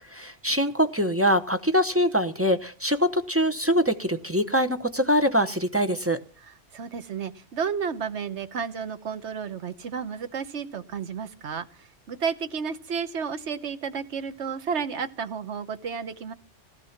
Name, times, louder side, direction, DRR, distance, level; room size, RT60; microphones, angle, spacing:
voice 1, 0.1-6.2, equal, 15° right, 8 dB, 0.8 m, -23 dB
voice 2, 6.7-16.3, right 6 dB, 65° right, 11 dB, 1.3 m, -32 dB
17.0 x 12.5 x 5.9 m, 0.39 s
omnidirectional pair, 1.3 m